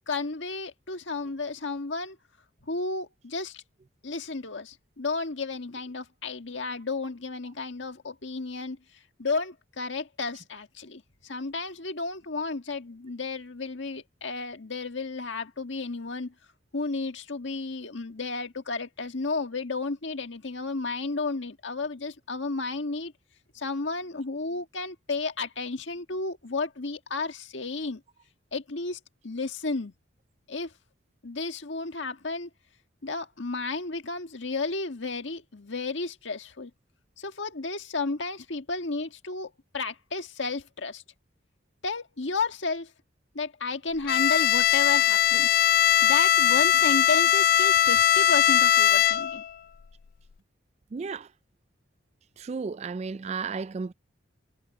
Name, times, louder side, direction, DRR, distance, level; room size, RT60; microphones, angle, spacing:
voice 1, 0.1-2.2 2.6-3.6 4.0-8.8 9.2-16.3 16.7-23.1 23.5-28.0 28.5-29.9 30.5-30.7 31.2-32.5 33.0-36.7 37.2-41.0 41.8-42.9 43.3-45.5 46.0-49.4, left 3 dB, 70° left, 1.6 m, -32 dB
Bowed string instrument, 44.1-49.5, left 11 dB, 50° left, 0.3 m, -20 dB
voice 2, 50.9-51.3 52.4-53.9, right 5 dB, 35° right, 0.3 m, -33 dB
head